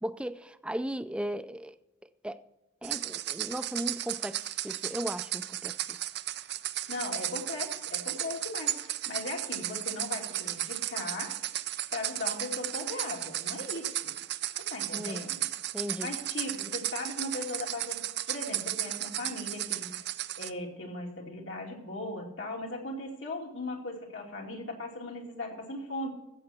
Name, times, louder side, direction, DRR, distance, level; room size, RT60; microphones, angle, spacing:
voice 1, 0.0-1.7 2.2-2.4 2.8-6.0 14.9-15.2 15.7-16.1, right 1 dB, 5° right, 0.5 m, -36 dB
sound 1, 2.8-20.5, right 13 dB, 60° right, 0.5 m, -35 dB
voice 2, 6.9-11.4 11.9-14.1 14.7-15.5 16.0-18.0 18.3-20.1 20.4-26.1, left 2 dB, 75° left, 2.6 m, -38 dB
14.5 x 7.8 x 4.4 m
head